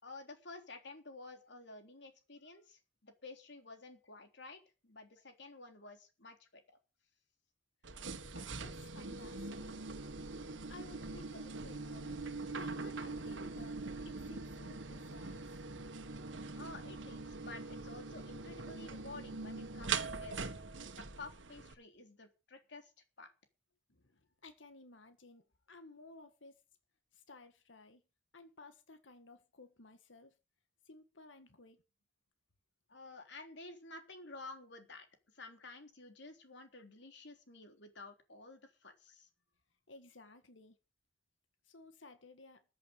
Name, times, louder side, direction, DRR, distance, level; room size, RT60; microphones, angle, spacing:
voice 1, 0.0-6.8 16.6-20.5 21.0-22.9 23.2-23.3 32.9-39.3, left 3 dB, 65° left, 3.6 m, -52 dB
sound 1, 7.8-21.7, right 4 dB, 80° right, 1.6 m, -43 dB
voice 2, 8.3-9.8 10.5-12.2 12.5-15.6 23.9-26.6 27.1-28.0 28.3-30.4 30.9-31.8 36.7-36.8 39.9-40.8 41.6-42.6, left 3 dB, 80° left, 1.8 m, -57 dB
14.5 x 8.2 x 7.7 m
head